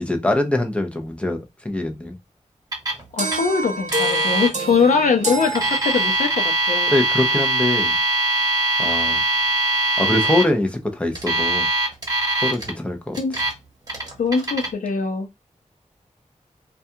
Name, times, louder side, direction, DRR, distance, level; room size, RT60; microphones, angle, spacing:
voice 1, 0.0-2.2 6.9-8.0 8.8-9.2 10.0-11.7 12.4-13.2, left 1 dB, 10° left, 0.6 m, -23 dB
Alarm, 2.7-3.0 3.3-3.4 3.9-4.5 5.4-10.4 11.2-12.7 13.1-13.5 13.9-14.7, right 2 dB, 30° right, 1.0 m, -22 dB
voice 2, 3.1-6.9 13.2-13.3 14.2-15.3, left 5 dB, 90° left, 0.6 m, -21 dB
sound 1, 3.2-6.5, right 2 dB, 65° right, 0.7 m, -28 dB
2.4 x 2.3 x 2.7 m
wide cardioid pair, 90°, 13 cm